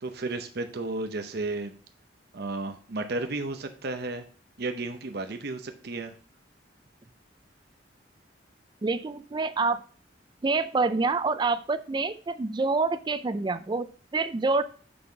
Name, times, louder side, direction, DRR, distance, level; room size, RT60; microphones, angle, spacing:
voice 1, 0.0-1.7 2.3-4.2 4.6-6.1, right 2 dB, 60° right, 7 dB, 0.7 m, -33 dB
voice 2, 8.8-9.8 10.4-14.6, right 3 dB, 25° right, 12 dB, 0.4 m, -27 dB
6.9 x 5.5 x 3.9 m, 0.41 s
head